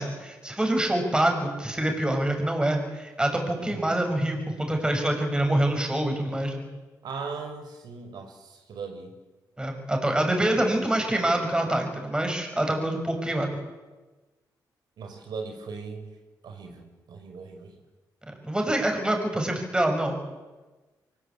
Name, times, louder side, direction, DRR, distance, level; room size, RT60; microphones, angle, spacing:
voice 1, 0.0-6.6 9.6-13.5 18.4-20.2, right 1 dB, 10° right, 3 dB, 6.3 m, -26 dB
voice 2, 3.6-3.9 7.0-9.1 15.0-16.1 16.4-17.8, right 4 dB, 70° right, 5 dB, 4.7 m, -39 dB
24.0 x 20.5 x 8.7 m, 1.2 s
cardioid pair, 105°, 7 cm